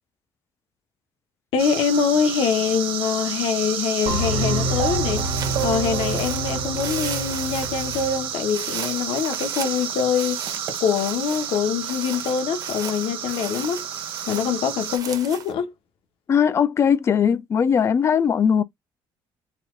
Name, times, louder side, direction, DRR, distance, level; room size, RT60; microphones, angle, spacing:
voice 1, 1.5-5.3 5.6-10.4 10.8-13.8 14.3-15.7, left 7 dB, 65° left, 1.1 m, -24 dB
sound 1, 1.6-15.0, right 8 dB, 65° right, 1.4 m, -31 dB
sound 2, 4.1-8.3, right 2 dB, 85° right, 1.0 m, -27 dB
sound 3, 5.2-15.5, right 7 dB, 40° right, 0.8 m, -37 dB
voice 2, 16.3-18.6, left 7 dB, 30° left, 0.4 m, -19 dB
4.1 x 2.4 x 3.7 m
cardioid pair, 175°, 10 cm